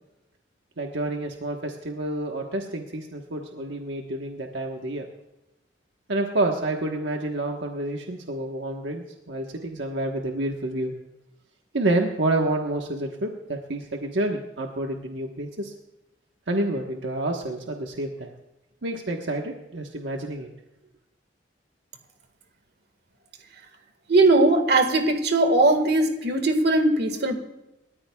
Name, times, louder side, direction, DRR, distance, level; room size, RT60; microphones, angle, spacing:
voice 1, 0.8-5.1 6.1-10.9 11.7-15.7 16.5-18.3 18.8-20.5, right 2 dB, 80° right, 2 dB, 1.3 m, -28 dB
voice 2, 24.1-27.4, right 2 dB, 65° right, 7 dB, 1.8 m, -19 dB
29.5 x 14.0 x 2.4 m, 0.94 s
head